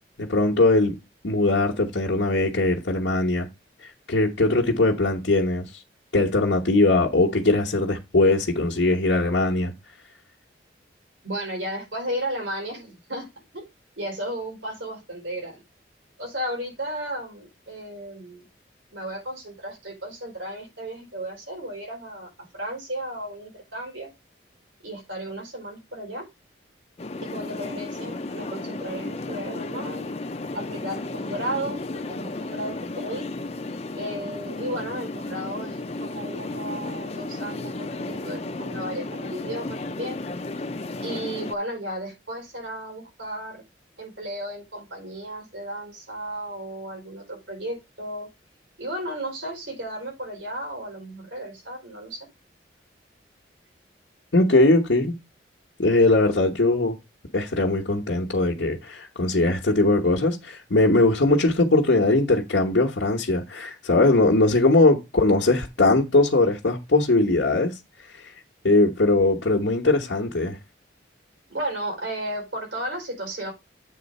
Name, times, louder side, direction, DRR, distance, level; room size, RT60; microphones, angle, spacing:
voice 1, 0.2-1.0 1.2-3.5 3.8-5.8 6.1-9.7 54.3-55.1 55.8-57.0 57.3-67.8 68.1-68.3 68.6-70.6, left 2 dB, 75° left, 1.2 m, -20 dB
voice 2, 11.2-13.3 13.5-13.6 14.0-15.6 16.2-18.4 18.9-22.3 22.5-24.1 24.8-26.3 27.2-30.1 30.5-33.3 34.0-40.2 41.0-43.6 44.0-48.3 48.8-52.3 71.5-73.5, right 1 dB, 85° right, 5.1 m, -34 dB
sound 1, 27.0-41.6, left 2 dB, 35° left, 0.6 m, -33 dB
8.4 x 3.9 x 5.4 m
head